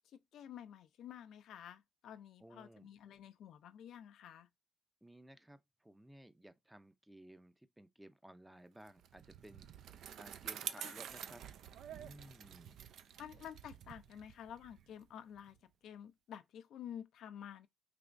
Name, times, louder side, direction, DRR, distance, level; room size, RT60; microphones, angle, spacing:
voice 1, 0.3-4.5 10.8-11.0 13.2-17.7, left 9 dB, 75° left, 0.4 m, -51 dB
voice 2, 2.4-2.9 5.0-9.7 10.2-11.5 11.9-12.8, right 1 dB, 5° right, 0.5 m, -57 dB
Bicycle, 8.9-15.6, right 9 dB, 75° right, 0.3 m, -49 dB
3.4 x 2.9 x 2.5 m
cardioid pair, 90°, 0 cm